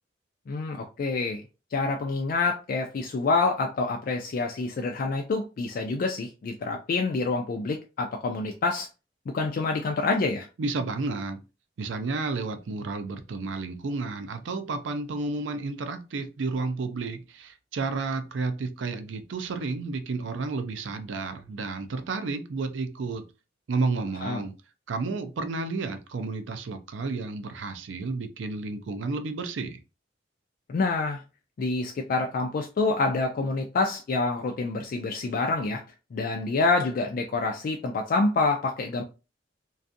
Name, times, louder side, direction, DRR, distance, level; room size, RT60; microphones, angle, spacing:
voice 1, 0.5-1.4 1.7-8.9 9.3-10.5 24.2-24.4 30.7-31.2 31.6-35.8 36.1-39.0, left 3 dB, 50° left, 0.3 m, -27 dB
voice 2, 10.6-11.4 11.8-23.2 23.7-24.5 24.9-29.8, right 3 dB, 90° right, 0.4 m, -31 dB
2.5 x 2.3 x 2.5 m
head